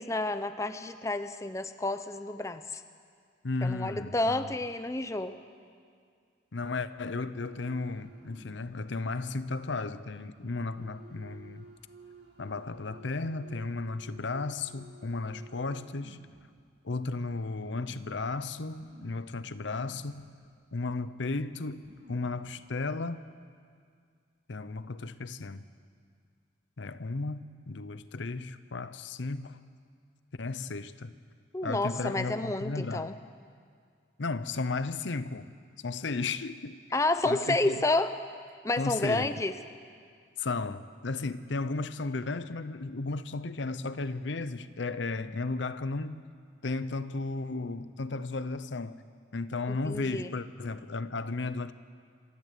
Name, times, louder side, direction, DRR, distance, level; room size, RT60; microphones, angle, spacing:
voice 1, 0.0-2.8 3.6-5.3 31.5-33.1 36.9-38.2 38.6-39.5 49.7-50.3, left 2 dB, 15° left, 0.6 m, -30 dB
voice 2, 3.4-4.5 6.5-11.7 12.4-16.3 16.8-20.3 20.7-23.2 24.5-25.6 26.8-29.6 30.4-31.1 31.6-33.1 34.2-35.5 35.8-36.8 37.2-37.8 38.8-39.3 40.4-46.2 46.6-49.0 49.3-51.7, left 3 dB, 75° left, 0.7 m, -34 dB
sound 1, 7.4-8.8 9.1-9.3 10.4-16.4 17.0-17.1 17.4-18.3 18.7-20.3 20.6-20.7 21.4-21.5 21.7-22.5 23.1-23.3, right 2 dB, 60° right, 2.7 m, -54 dB
27.0 x 12.5 x 8.3 m
head